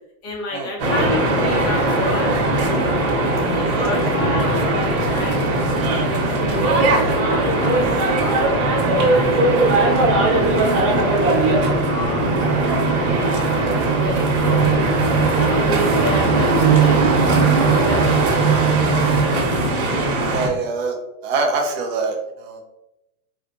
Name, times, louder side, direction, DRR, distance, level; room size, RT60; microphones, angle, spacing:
voice 1, 0.2-2.4 3.5-5.4 5.9-8.4 8.9-12.3 13.0-17.1 17.6-18.8, left 1 dB, 30° left, 0 dB, 0.5 m, -30 dB
sound 1, 0.8-20.5, right 2 dB, 65° right, 1.2 m, -19 dB
sound 2, 6.5-19.2, right 10 dB, 90° right, 0.7 m, -24 dB
voice 2, 20.3-21.0 21.2-22.6, right 3 dB, 45° right, 2 dB, 0.6 m, -24 dB
4.4 x 2.4 x 2.5 m, 0.92 s
supercardioid pair, 160°, 45 cm